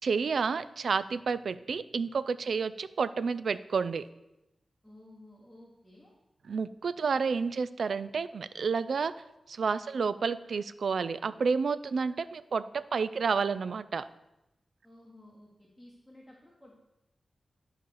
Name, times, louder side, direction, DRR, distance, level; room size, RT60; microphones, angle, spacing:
voice 1, 0.0-4.1 6.5-9.1 9.5-14.1, right 5 dB, 70° right, 15 dB, 0.3 m, -30 dB
voice 2, 4.8-6.1 14.8-16.8, left 1 dB, 5° right, -3 dB, 1.3 m, -54 dB
10.5 x 4.1 x 6.4 m, 0.93 s
wide cardioid pair, 155°, 0 cm